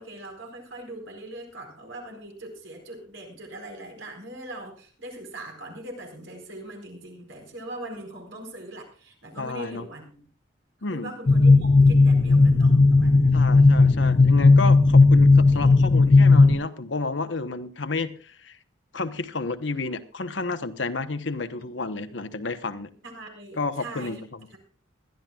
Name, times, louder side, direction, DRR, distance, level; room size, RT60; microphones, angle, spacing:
voice 1, 0.0-10.2 10.9-13.4 15.6-15.7 16.5-16.6 23.0-24.2, right 1 dB, 85° right, 3 dB, 4.6 m, -41 dB
voice 2, 9.4-9.9 10.8-11.1 13.3-18.6 18.9-22.9 23.5-24.6, left 3 dB, 75° left, 9 dB, 1.1 m, -31 dB
sound 1, 11.3-16.6, left 3 dB, 40° left, 0.5 m, -15 dB
21.0 x 12.5 x 2.4 m, 0.40 s
head